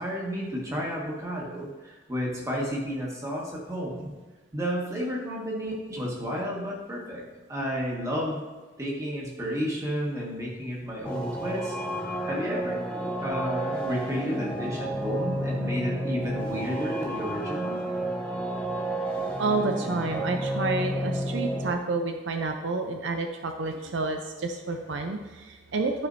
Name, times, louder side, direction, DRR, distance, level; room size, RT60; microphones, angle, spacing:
voice 1, 0.0-4.1 4.5-7.2 7.5-8.4 8.8-17.8, equal, 15° right, -3 dB, 1.5 m, -32 dB
sound 1, 11.0-21.7, right 1 dB, 5° left, 0.7 m, -31 dB
voice 2, 19.4-26.1, right 3 dB, 75° right, 5 dB, 0.6 m, -29 dB
11.5 x 5.0 x 2.6 m, 1.3 s
head